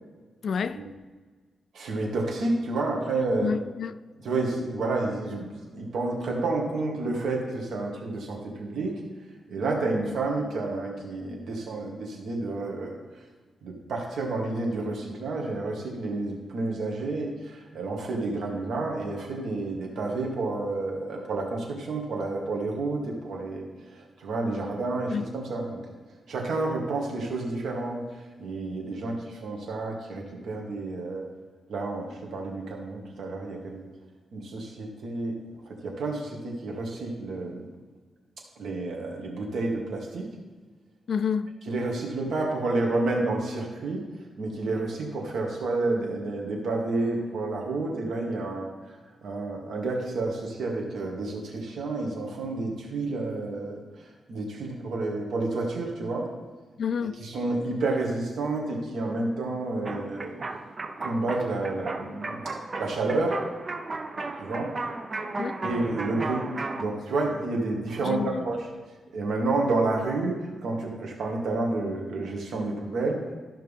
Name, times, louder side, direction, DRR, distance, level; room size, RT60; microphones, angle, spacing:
voice 1, 0.4-0.8 3.4-3.9 25.1-25.3 41.1-41.5 56.8-57.2 65.4-65.6 68.0-68.4, left 6 dB, 55° left, 0.4 m, -29 dB
voice 2, 1.7-3.5 4.2-8.9 9.5-13.0 13.6-25.8 26.3-31.2 31.7-33.8 34.3-35.4 35.7-37.7 38.6-40.3 41.7-44.0 44.4-48.7 49.2-56.3 57.2-60.3 61.0-62.5 62.8-63.4 64.4-64.7 65.6-66.5 66.8-68.7 69.1-70.4 70.6-73.2, right 2 dB, 75° right, 2.0 m, -30 dB
sound 1, 59.8-66.8, right 3 dB, 30° right, 0.6 m, -35 dB
13.5 x 5.8 x 3.6 m
wide cardioid pair, 140°, 0 cm